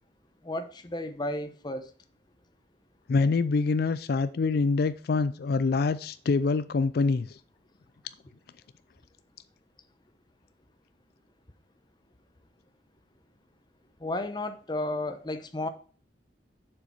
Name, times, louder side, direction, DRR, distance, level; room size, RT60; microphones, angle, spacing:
voice 1, 0.4-1.9 14.0-15.7, left 1 dB, 25° left, 0.8 m, -33 dB
voice 2, 3.1-7.4, left 4 dB, 55° left, 0.4 m, -25 dB
7.1 x 6.7 x 4.5 m
head